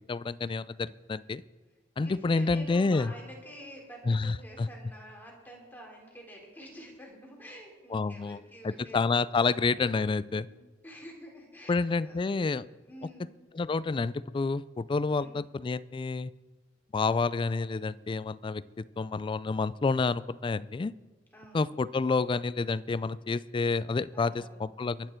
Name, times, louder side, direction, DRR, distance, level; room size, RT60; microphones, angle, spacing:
voice 1, 0.0-1.4 2.0-3.1 4.1-4.7 7.9-10.5 11.7-12.7 13.5-16.3 16.9-20.9 21.5-25.2, left 4 dB, 30° left, 18 dB, 0.3 m, -29 dB
voice 2, 2.0-9.2 10.3-10.6 10.8-12.2 12.8-13.4 15.2-15.4 21.3-21.6 24.1-24.6, equal, 10° left, -1 dB, 3.5 m, -48 dB
23.0 x 8.8 x 4.5 m, 1.4 s
head